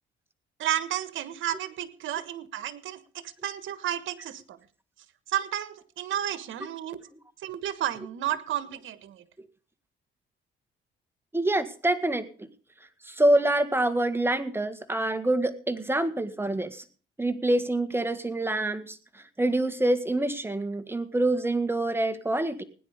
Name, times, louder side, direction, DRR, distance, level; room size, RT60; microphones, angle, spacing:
voice 1, 0.6-4.6 5.3-7.0 7.4-9.2, right 11 dB, 80° right, 14 dB, 1.4 m, -32 dB
voice 2, 11.3-12.5 13.1-16.8 17.2-22.6, right 1 dB, 10° right, 10 dB, 1.8 m, -26 dB
17.5 x 10.0 x 5.1 m, 0.40 s
cardioid pair, 90°, 20 cm